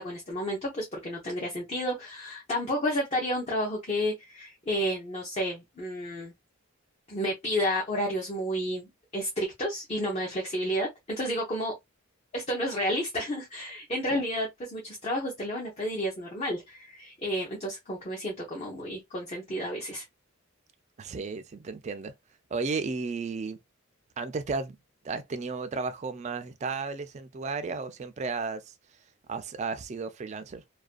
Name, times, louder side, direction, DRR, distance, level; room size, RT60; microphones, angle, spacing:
voice 1, 0.0-6.3 7.1-11.7 12.3-20.0, equal, 30° left, 0.6 m, -31 dB
voice 2, 21.0-22.1 22.5-23.6 24.2-24.8 25.0-28.7 29.3-30.6, right 4 dB, 30° right, 0.3 m, -33 dB
2.4 x 2.2 x 2.4 m
head